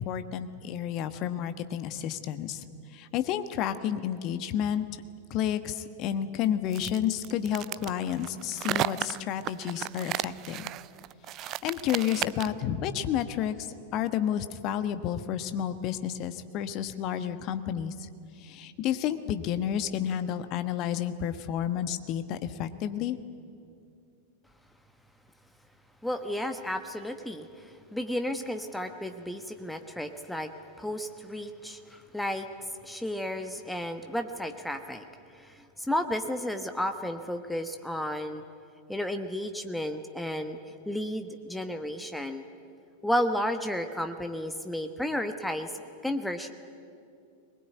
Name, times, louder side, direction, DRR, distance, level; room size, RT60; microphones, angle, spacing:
voice 1, 0.0-2.6 2.9-4.9 5.3-10.7 11.4-13.6 13.9-17.9 18.4-23.2, left 10 dB, 40° left, 11 dB, 1.3 m, -31 dB
sound 1, 6.7-12.6, right 14 dB, 35° right, 0.5 m, -34 dB
voice 2, 26.0-30.5 30.8-32.5 32.8-35.0 35.3-38.4 38.9-40.6 40.8-42.4 43.0-45.7 46.0-46.5, left 1 dB, 5° left, 7 dB, 1.2 m, -32 dB
22.0 x 20.5 x 9.6 m, 2.5 s
figure-of-eight pair, 90°, 0 cm